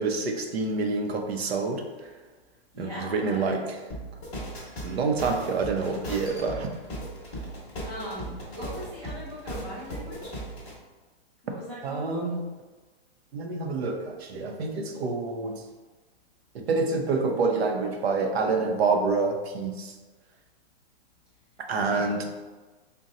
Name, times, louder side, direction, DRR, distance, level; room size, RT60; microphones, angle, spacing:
voice 1, 0.0-1.9 2.8-3.6 4.8-6.7 11.8-12.4 13.3-15.6 16.5-19.9 21.6-22.3, right 4 dB, 70° right, 3 dB, 0.7 m, -27 dB
voice 2, 2.7-3.5 7.8-10.4 11.4-12.1 21.7-22.1, equal, 10° right, -11 dB, 0.4 m, -40 dB
sound 1, 3.9-10.7, right 1 dB, 10° left, 0.9 m, -37 dB
4.1 x 2.2 x 3.7 m, 1.3 s
hypercardioid pair, 170°, 33 cm